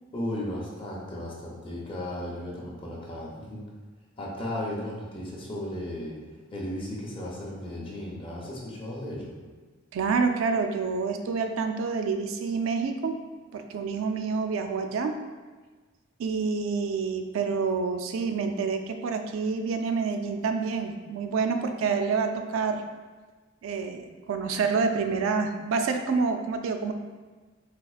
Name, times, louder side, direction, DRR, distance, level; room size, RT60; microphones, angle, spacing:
voice 1, 0.1-3.6 4.2-6.1 6.5-9.3, left 1 dB, 25° left, -4 dB, 0.5 m, -35 dB
voice 2, 9.9-13.2 13.5-15.2 16.2-22.8 23.6-26.9, right 5 dB, 80° right, 6 dB, 0.3 m, -28 dB
4.2 x 2.4 x 2.4 m, 1.3 s
head